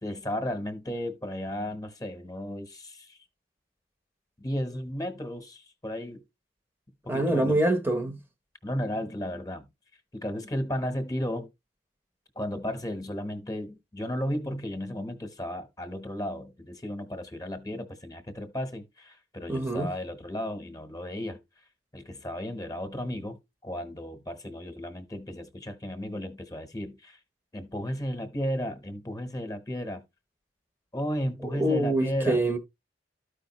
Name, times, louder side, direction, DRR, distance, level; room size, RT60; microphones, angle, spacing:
voice 1, 0.0-3.2 4.4-6.2 7.0-7.7 8.6-9.7 10.1-11.5 12.3-21.4 21.9-27.2 27.5-30.0 30.9-32.4, equal, 20° left, 1.0 m, -34 dB
voice 2, 7.1-8.2 19.5-19.9 31.5-32.6, right 1 dB, 10° right, 0.8 m, -25 dB
13.0 x 5.0 x 2.9 m
head